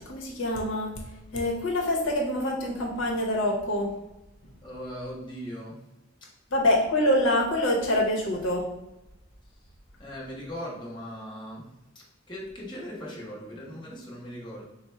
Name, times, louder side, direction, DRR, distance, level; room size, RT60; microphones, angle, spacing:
voice 1, 0.1-1.0 1.3-3.9 6.5-8.7, left 1 dB, 75° left, -1 dB, 0.8 m, -25 dB
voice 2, 4.6-5.8 10.0-11.7 11.9-14.6, equal, 25° left, -4 dB, 0.9 m, -39 dB
4.2 x 2.1 x 4.3 m, 0.94 s
head